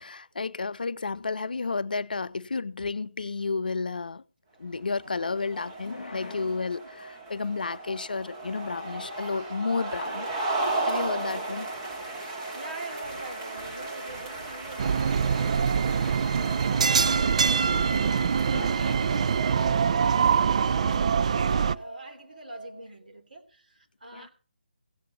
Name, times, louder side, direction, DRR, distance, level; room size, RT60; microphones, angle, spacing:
voice 1, 0.0-4.2 4.6-10.3 10.9-11.7 18.5-18.7 24.1-24.3, left 4 dB, 65° left, 0.6 m, -31 dB
sound 1, 4.7-22.8, right 1 dB, 85° right, 6.5 m, -47 dB
sound 2, 4.9-20.6, right 2 dB, 30° right, 3.2 m, -36 dB
voice 2, 12.3-24.3, right 2 dB, 65° right, 3.3 m, -45 dB
sound 3, 14.8-21.8, right 6 dB, 45° right, 0.5 m, -24 dB
17.0 x 8.3 x 4.2 m
figure-of-eight pair, 150°, 5 cm